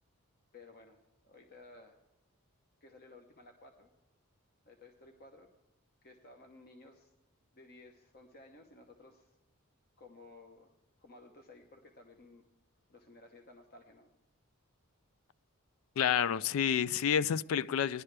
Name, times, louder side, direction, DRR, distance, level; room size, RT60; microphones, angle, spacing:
voice 1, 0.5-2.0 2.8-3.9 4.7-5.5 6.0-7.1 7.5-9.4 10.0-10.7 11.0-12.4 12.9-14.1, left 2 dB, 45° left, 1.0 m, -56 dB
voice 2, 16.0-18.0, left 8 dB, 70° left, 0.3 m, -29 dB
17.5 x 11.0 x 3.3 m
head